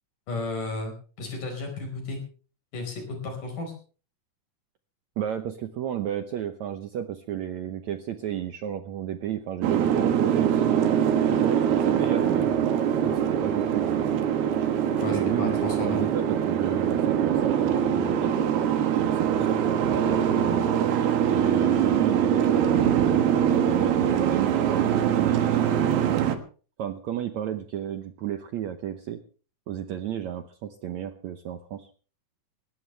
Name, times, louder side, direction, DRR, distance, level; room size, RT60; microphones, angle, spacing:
voice 1, 0.3-2.2 2.7-3.7 15.0-16.0 19.3-19.8, left 3 dB, 55° left, 3 dB, 6.4 m, -34 dB
voice 2, 5.2-11.0 11.2-12.6 13.0-14.1 15.1-18.4 19.0-21.0 21.3-22.9 23.6-26.4 26.8-29.2 29.7-31.9, right 10 dB, 70° right, 9 dB, 1.7 m, -33 dB
Boat Water vehicle, 9.6-26.4, right 9 dB, 85° right, 3.5 m, -23 dB
20.0 x 17.5 x 3.4 m, 0.39 s
omnidirectional pair, 4.4 m